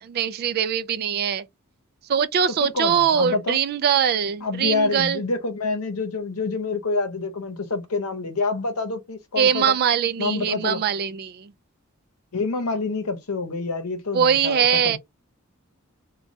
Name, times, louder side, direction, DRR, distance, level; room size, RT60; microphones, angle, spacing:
voice 1, 0.1-1.4 2.1-5.2 9.4-11.5 14.1-15.0, right 8 dB, 45° right, 0.3 m, -22 dB
voice 2, 2.6-3.6 4.4-9.7 10.2-10.8 12.3-15.0, left 3 dB, 85° left, 0.8 m, -27 dB
2.6 x 2.3 x 3.1 m
head